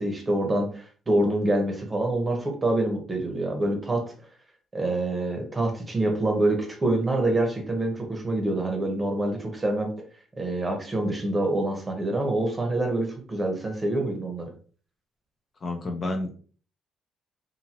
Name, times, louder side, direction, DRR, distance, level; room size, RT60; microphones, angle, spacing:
voice 1, 0.0-4.0 4.7-9.9 10.4-14.5, right 1 dB, 20° right, 2 dB, 0.8 m, -26 dB
voice 2, 15.6-16.3, left 2 dB, 35° left, 3 dB, 0.5 m, -29 dB
2.7 x 2.6 x 2.8 m, 0.42 s
cardioid pair, 120°, 0 cm